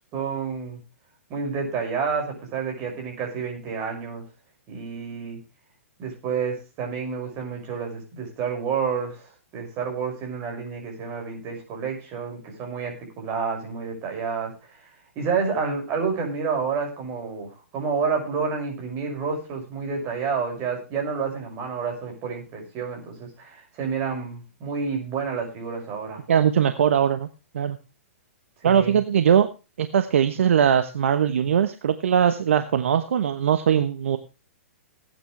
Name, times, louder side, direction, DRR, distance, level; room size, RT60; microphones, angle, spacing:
voice 1, 0.1-0.8 1.3-4.2 4.7-5.4 6.0-14.9 15.2-26.2 28.6-29.0, right 5 dB, 35° right, 2 dB, 6.2 m, -29 dB
voice 2, 26.3-27.3 27.5-27.8 28.6-29.5 29.8-34.2, right 8 dB, 65° right, 10 dB, 1.1 m, -20 dB
18.5 x 9.4 x 3.3 m, 0.30 s
hypercardioid pair, 120°, 7 cm